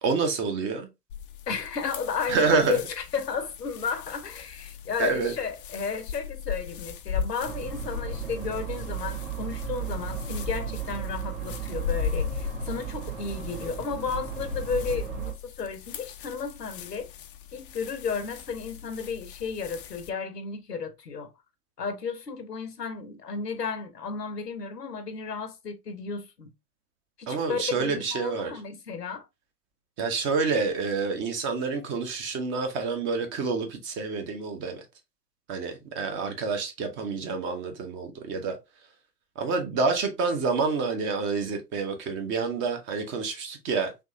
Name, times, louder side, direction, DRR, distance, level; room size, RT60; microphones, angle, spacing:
voice 1, 0.0-0.9 2.3-2.8 5.0-5.3 27.3-28.5 30.0-34.8 35.5-38.6 39.4-43.9, right 4 dB, 25° right, 0.7 m, -28 dB
sound 1, 1.1-20.1, left 7 dB, 40° left, 0.4 m, -38 dB
voice 2, 1.5-17.1 17.5-21.3 21.8-26.5 27.2-29.3, left 5 dB, 85° left, 0.9 m, -33 dB
sound 2, 7.4-15.3, right 10 dB, 55° right, 1.6 m, -35 dB
3.5 x 3.0 x 2.6 m
figure-of-eight pair, 100°, 47 cm